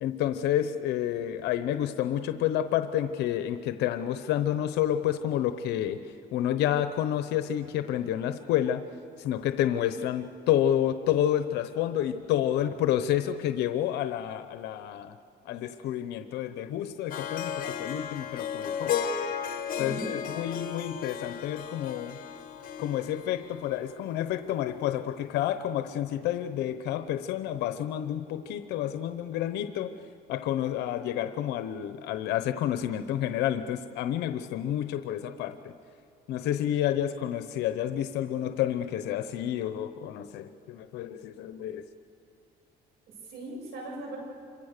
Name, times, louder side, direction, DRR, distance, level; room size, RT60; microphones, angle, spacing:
voice 1, 0.0-6.0 6.3-8.8 9.2-15.1 15.5-19.0 19.8-22.2 22.8-29.9 30.3-35.7 36.3-41.8, left 11 dB, 85° left, 10 dB, 0.9 m, -29 dB
Harp, 17.1-24.3, left 8 dB, 55° left, 1.8 m, -34 dB
voice 2, 19.8-20.2 43.2-44.2, right 2 dB, 70° right, 0 dB, 7.8 m, -38 dB
26.5 x 23.5 x 6.7 m, 2.5 s
cardioid pair, 110°, 17 cm